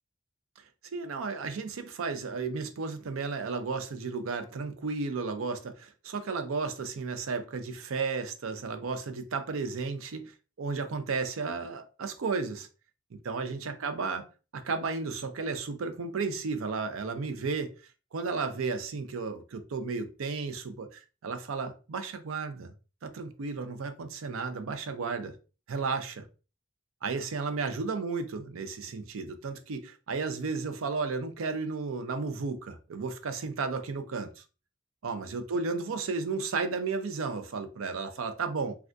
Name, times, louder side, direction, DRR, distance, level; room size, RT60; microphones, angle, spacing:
voice 1, 0.9-12.7 13.2-14.3 14.5-17.7 18.1-22.7 23.0-25.3 25.7-26.2 27.0-34.4 35.0-38.8, right 4 dB, 85° right, 0.5 m, -33 dB
3.4 x 2.3 x 2.5 m
head